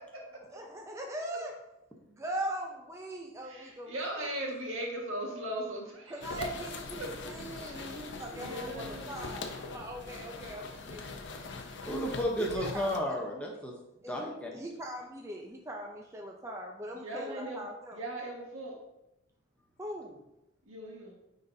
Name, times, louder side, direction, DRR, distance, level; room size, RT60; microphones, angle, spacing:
voice 1, 0.5-1.5 2.1-4.6 6.1-11.8 12.4-13.2 14.0-18.0 19.8-20.2, right 1 dB, 15° right, 0 dB, 0.5 m, -41 dB
voice 2, 3.4-6.5 7.0-7.1 7.7-7.9 8.3-9.1 17.0-17.7 17.9-18.8 20.7-21.2, right 1 dB, 80° right, -1 dB, 1.6 m, -38 dB
sound 1, 6.2-13.0, left 3 dB, 55° left, 0.6 m, -42 dB
voice 3, 11.8-13.7 14.1-14.5, equal, 5° left, -1 dB, 0.8 m, -32 dB
9.1 x 3.9 x 2.7 m, 0.87 s
head